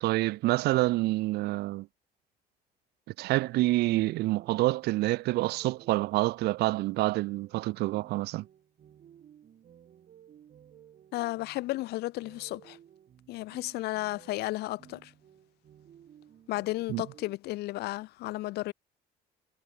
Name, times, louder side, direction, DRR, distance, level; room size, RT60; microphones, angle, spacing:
voice 1, 0.0-1.9 3.2-8.4 16.9-17.0, right 18 dB, 75° right, 0.4 m, -27 dB
sound 1, 5.3-17.4, right 9 dB, 50° right, 1.8 m, -57 dB
voice 2, 11.1-12.8 13.3-15.1 16.5-18.7, left 18 dB, 75° left, 0.5 m, -33 dB
cardioid pair, 110°, 17 cm